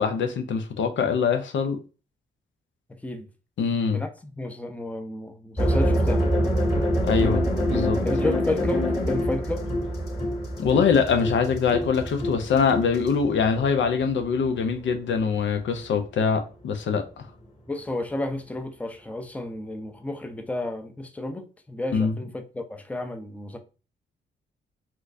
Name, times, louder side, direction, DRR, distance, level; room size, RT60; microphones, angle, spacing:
voice 1, 0.0-1.8 3.6-4.0 7.0-8.0 10.6-17.3 21.9-22.1, left 6 dB, 65° left, 0.6 m, -23 dB
voice 2, 2.9-3.3 3.9-6.3 8.0-9.7 17.7-23.6, left 2 dB, 5° left, 0.6 m, -32 dB
sound 1, 5.6-14.5, equal, 30° left, 2.0 m, -25 dB
4.4 x 2.4 x 2.6 m
cardioid pair, 60°, 20 cm